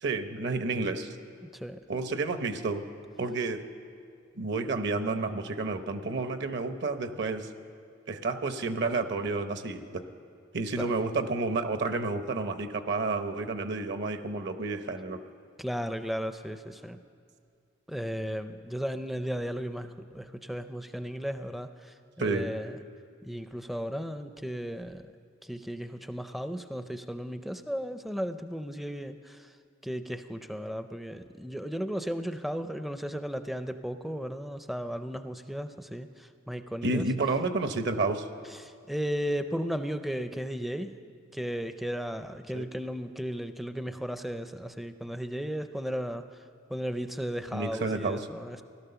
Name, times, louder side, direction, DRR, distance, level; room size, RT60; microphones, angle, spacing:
voice 1, 0.0-1.2 1.9-2.8 3.2-3.6 4.4-7.5 8.1-10.0 10.5-15.2 22.2-22.5 36.8-38.3 42.5-42.7 47.5-48.2, right 3 dB, 60° right, 8 dB, 0.9 m, -30 dB
voice 2, 1.4-1.8 10.8-10.9 15.6-17.0 17.9-22.8 23.2-25.0 25.4-29.5 29.8-37.1 38.5-41.0 41.3-46.3 46.7-48.6, equal, ahead, 9 dB, 0.4 m, -35 dB
16.5 x 12.5 x 6.9 m, 2.3 s
head